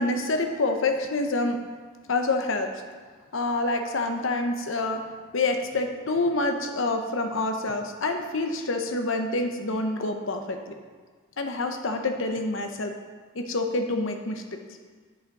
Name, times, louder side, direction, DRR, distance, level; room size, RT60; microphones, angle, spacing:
voice 1, 0.0-1.6 2.1-2.7 3.3-5.0 5.3-10.7 11.4-12.9 13.3-14.6, left 2 dB, 75° left, 5 dB, 0.8 m, -27 dB
8.0 x 6.5 x 4.7 m, 1.5 s
head